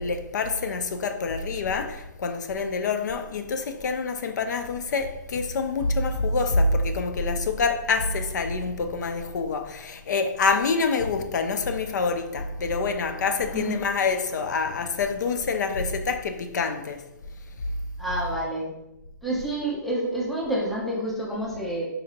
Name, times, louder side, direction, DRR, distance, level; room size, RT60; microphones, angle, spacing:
voice 1, 0.0-17.1, left 4 dB, 65° left, 0.4 m, -26 dB
voice 2, 18.0-18.7 19.2-21.9, right 1 dB, ahead, 0.5 m, -28 dB
4.0 x 2.6 x 2.5 m
hypercardioid pair, 155°, 11 cm